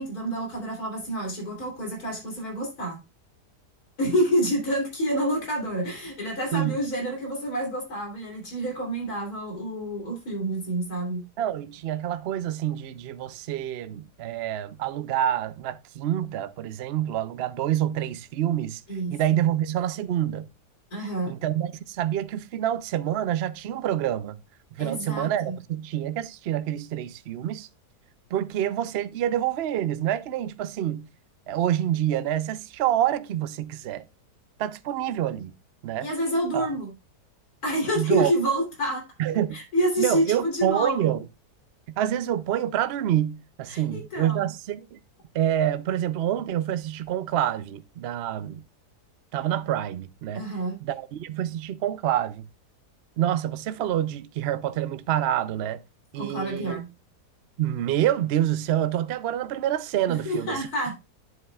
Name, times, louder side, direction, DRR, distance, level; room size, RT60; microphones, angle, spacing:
voice 1, 0.0-3.0 4.0-11.2 18.9-19.4 20.9-21.3 24.8-25.6 36.0-36.9 37.6-39.0 39.5-41.1 43.7-44.5 50.3-50.8 56.2-56.9 60.1-61.0, right 1 dB, 65° left, 3.7 m, -28 dB
voice 2, 11.4-18.8 19.1-20.5 21.3-24.4 24.8-27.7 28.3-31.1 31.5-34.0 34.6-35.5 35.8-36.1 36.5-36.7 38.0-38.3 39.2-39.6 40.0-41.2 42.0-45.0 45.3-48.6 49.3-50.4 50.8-52.4 53.2-55.8 56.1-56.8 57.6-60.6, right 11 dB, 75° right, 0.5 m, -27 dB
9.6 x 8.0 x 2.3 m
omnidirectional pair, 1.8 m